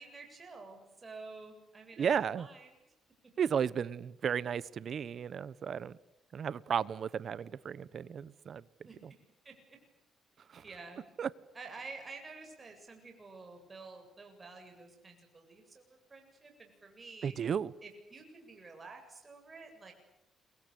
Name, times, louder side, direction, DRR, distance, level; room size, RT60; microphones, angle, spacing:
voice 1, 0.0-2.7 8.9-9.0 9.4-9.8 10.6-11.1 11.5-17.4 17.8-19.9, right 3 dB, 30° right, 3 dB, 7.8 m, -50 dB
voice 2, 2.0-2.5 3.4-6.0 6.3-8.6 9.0-9.1 10.5-10.6 11.2-11.3 17.2-17.7, right 7 dB, 55° right, 19 dB, 1.1 m, -34 dB
29.5 x 23.5 x 8.5 m, 0.87 s
cardioid pair, 90°, 0 cm